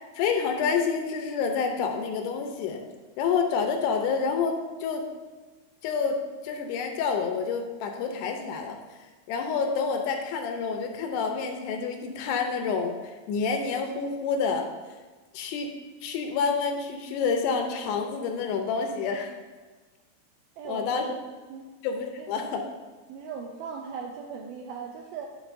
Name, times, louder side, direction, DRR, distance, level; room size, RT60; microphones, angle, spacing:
voice 1, 0.0-2.8 3.2-5.1 5.8-8.8 9.3-14.7 15.3-15.7 16.0-19.3 20.6-21.1 21.8-22.6, left 5 dB, 80° left, 4 dB, 2.7 m, -28 dB
voice 2, 20.6-21.1 21.5-21.7 22.2-22.5 23.1-25.4, right 6 dB, 85° right, 1 dB, 2.2 m, -38 dB
12.0 x 5.5 x 2.6 m, 1.4 s
omnidirectional pair, 4.9 m